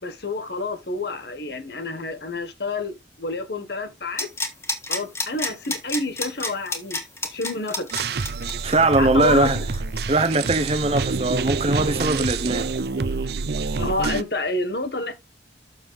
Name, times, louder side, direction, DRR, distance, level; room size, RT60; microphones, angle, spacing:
voice 1, 0.0-4.3 4.9-7.9 9.0-9.6 13.8-15.1, left 2 dB, 65° left, 1.5 m, -29 dB
sound 1, 4.2-11.7 12.0-12.1, left 3 dB, 15° left, 1.5 m, -30 dB
sound 2, 7.9-14.2, right 4 dB, 60° right, 0.6 m, -27 dB
voice 2, 8.6-9.6 10.1-12.7, right 2 dB, 35° right, 0.9 m, -21 dB
7.2 x 6.7 x 3.6 m
head